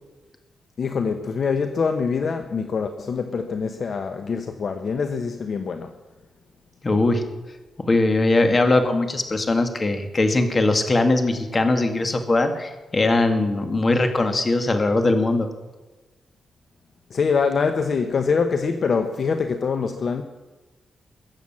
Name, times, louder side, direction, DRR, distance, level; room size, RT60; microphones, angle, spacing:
voice 1, 0.8-5.9 17.1-20.2, left 5 dB, 55° left, 1.0 m, -24 dB
voice 2, 6.8-7.2 7.8-15.5, left 2 dB, 30° left, 2.1 m, -20 dB
22.0 x 8.1 x 7.5 m
cardioid pair, 105°, 0 cm